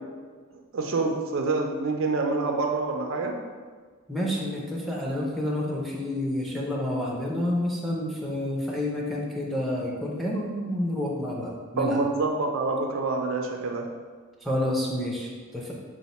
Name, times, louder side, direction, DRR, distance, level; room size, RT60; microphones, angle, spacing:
voice 1, 0.7-3.3 11.8-13.8, right 3 dB, 60° right, 2 dB, 0.4 m, -26 dB
voice 2, 4.1-12.0 14.4-15.7, left 1 dB, ahead, -3 dB, 0.5 m, -29 dB
4.1 x 2.1 x 4.1 m, 1.5 s
head